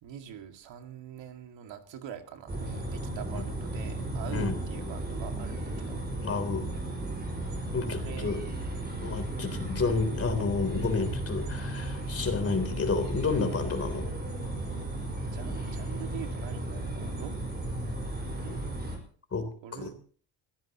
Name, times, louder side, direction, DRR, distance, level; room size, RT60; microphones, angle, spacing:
voice 1, 0.0-6.0 8.0-8.4 8.7-9.0 14.9-17.3 18.4-18.6 19.6-20.0, right 9 dB, 85° right, 5 dB, 2.3 m, -44 dB
sound 1, 2.5-19.0, right 1 dB, 20° right, 5.2 m, -35 dB
voice 2, 6.2-6.7 7.7-8.4 9.0-14.1 19.3-19.9, left 4 dB, 30° left, 7 dB, 3.5 m, -30 dB
25.5 x 16.0 x 3.0 m, 0.43 s
cardioid pair, 150°, 43 cm